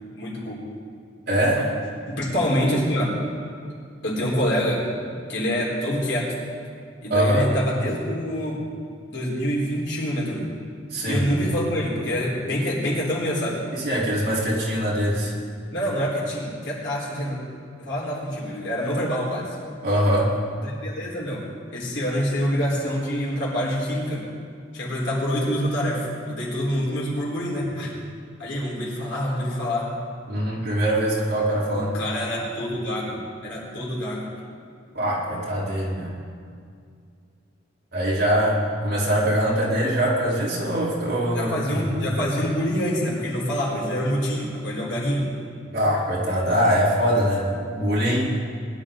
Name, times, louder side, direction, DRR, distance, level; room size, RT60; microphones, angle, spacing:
voice 1, 0.1-0.6 1.6-1.7 2.1-3.1 4.0-4.8 5.3-6.4 7.0-8.6 9.0-10.5 11.0-13.6 15.7-17.4 17.8-19.6 20.6-24.2 24.7-27.9 28.4-29.9 31.7-34.3 41.3-45.3, equal, 75° left, -5 dB, 4.2 m, -26 dB
voice 2, 1.3-1.6 7.1-7.5 10.9-11.2 13.7-15.3 19.8-20.3 30.3-31.9 34.9-36.1 37.9-41.8 45.7-48.3, equal, 55° right, -7 dB, 3.8 m, -22 dB
20.5 x 11.5 x 3.9 m, 2.3 s
head